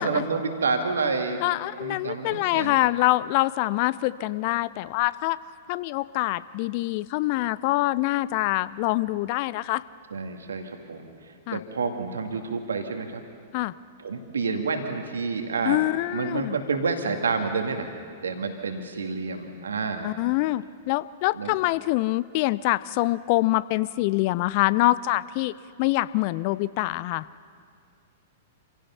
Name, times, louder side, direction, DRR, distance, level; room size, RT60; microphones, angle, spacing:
voice 1, 0.0-1.4 1.8-2.8 10.1-13.2 14.0-15.9 16.1-17.9 18.2-20.1 21.3-21.5, right 4 dB, 65° right, 5 dB, 2.2 m, -29 dB
voice 2, 1.4-5.4 5.7-9.8 11.5-11.6 13.5-13.7 15.6-16.6 20.0-25.5 25.8-27.3, left 18 dB, 40° left, 18 dB, 0.5 m, -25 dB
27.0 x 16.5 x 5.8 m, 2.2 s
figure-of-eight pair, 100°, 0 cm